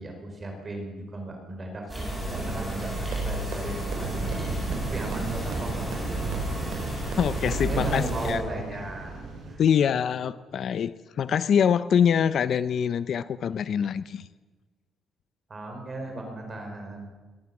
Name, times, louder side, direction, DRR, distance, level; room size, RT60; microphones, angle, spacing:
voice 1, 0.0-6.4 7.6-9.6 15.5-17.1, right 2 dB, 20° right, 3 dB, 5.0 m, -37 dB
sound 1, 1.9-8.3, right 1 dB, 5° right, 7.1 m, -31 dB
sound 2, 3.1-3.2 3.5-3.6 3.9-4.0 4.3-4.4 4.7-4.8 5.1-5.2 5.5-5.6 5.9-6.0 6.3-6.4 6.7-6.8 7.1-7.2 7.5-7.6 7.9-8.0, right 11 dB, 75° right, 5.6 m, -37 dB
sound 3, 4.0-9.5, right 3 dB, 45° right, 6.8 m, -36 dB
voice 2, 7.2-8.4 9.6-14.3, left 8 dB, 45° left, 14 dB, 0.6 m, -24 dB
21.5 x 17.5 x 7.2 m, 1.3 s
cardioid pair, 175°, 0 cm